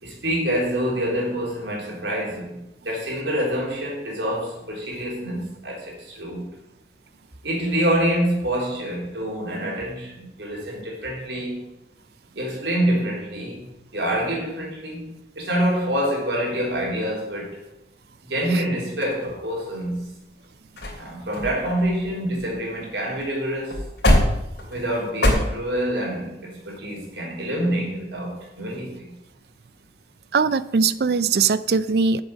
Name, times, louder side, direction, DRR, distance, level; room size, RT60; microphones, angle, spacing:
voice 1, 0.0-6.5 7.4-11.7 12.3-17.6 18.2-20.2 21.0-23.9 24.7-29.2, right 1 dB, 80° right, -3 dB, 3.6 m, -26 dB
sound 1, 19.0-19.9 20.4-20.5 20.8-21.0 21.3-22.9 23.2-23.3 23.6-25.3, left 1 dB, 75° left, 2.9 m, -24 dB
voice 2, 30.3-32.2, right 5 dB, 60° right, 16 dB, 0.4 m, -20 dB
8.1 x 7.5 x 6.4 m, 0.89 s
head